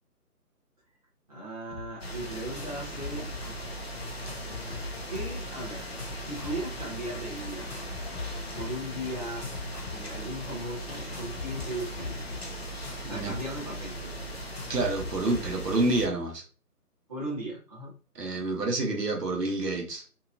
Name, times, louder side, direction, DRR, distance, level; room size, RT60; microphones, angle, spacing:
voice 1, 1.3-3.6 5.1-5.8 6.2-7.7 8.5-9.5 9.9-12.2 13.0-14.2 17.1-17.9, right 1 dB, 25° right, -6 dB, 0.7 m, -37 dB
sound 1, 1.7-1.9 2.1-2.7 3.0-3.5 4.0-5.4 5.8-6.7 7.5-8.7 9.2-10.3 10.9-13.4 13.7-13.8 14.3-15.4, left 4 dB, 20° left, 0.9 m, -41 dB
sound 2, 2.0-16.1, equal, 45° left, 0.4 m, -38 dB
voice 2, 13.0-13.4 14.7-16.4 18.1-20.1, right 2 dB, 85° right, 1 dB, 1.0 m, -28 dB
2.8 x 2.3 x 2.4 m, 0.38 s
figure-of-eight pair, 150°, 47 cm